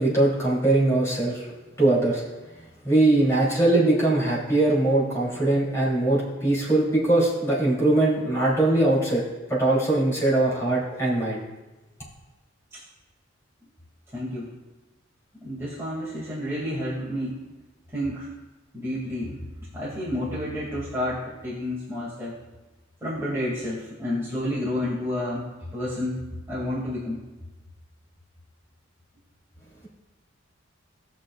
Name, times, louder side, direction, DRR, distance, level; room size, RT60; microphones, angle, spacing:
voice 1, 0.0-1.4 1.8-2.2 2.8-9.2 9.5-11.4, right 2 dB, 15° left, -6 dB, 3.1 m, -21 dB
voice 2, 14.1-14.5 15.4-17.5 17.9-18.3 18.7-19.4 19.7-22.4 23.0-27.2, left 1 dB, 15° right, -9 dB, 2.3 m, -30 dB
19.0 x 6.4 x 2.4 m, 1.1 s
head